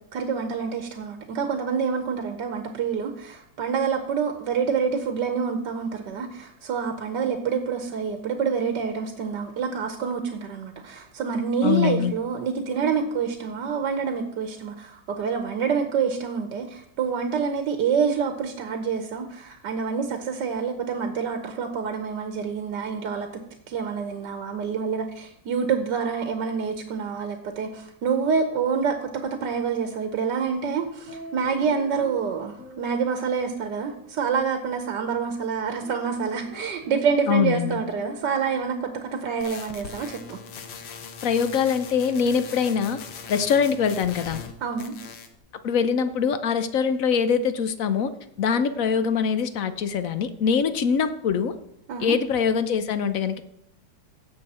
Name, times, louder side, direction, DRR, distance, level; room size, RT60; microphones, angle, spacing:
voice 1, 0.1-23.3 23.7-40.4 44.6-45.0 51.9-52.2, right 6 dB, 75° right, 6 dB, 1.6 m, -27 dB
voice 2, 11.6-12.1 37.3-37.8 41.2-43.0 43.3-44.4 45.6-48.1 48.4-51.5 52.0-53.4, left 6 dB, 60° left, 11 dB, 1.0 m, -23 dB
sound 1, 30.8-32.3 32.6-35.3 35.6-39.9, left 1 dB, 40° left, 3.0 m, -46 dB
sound 2, 39.4-44.5 44.8-45.4, left 6 dB, 90° left, 1.7 m, -40 dB
16.5 x 6.9 x 4.2 m, 0.70 s
omnidirectional pair, 2.0 m